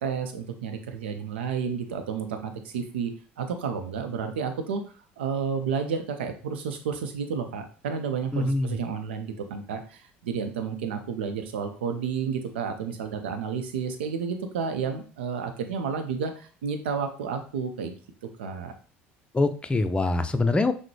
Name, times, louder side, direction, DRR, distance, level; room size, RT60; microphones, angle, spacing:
voice 1, 0.0-4.8 5.2-17.9 18.4-18.7, right 6 dB, 85° right, 7 dB, 0.6 m, -31 dB
voice 2, 8.3-8.8 19.3-20.7, left 2 dB, 20° left, 9 dB, 0.5 m, -24 dB
5.8 x 2.1 x 3.2 m, 0.40 s
hypercardioid pair, 70°, 6 cm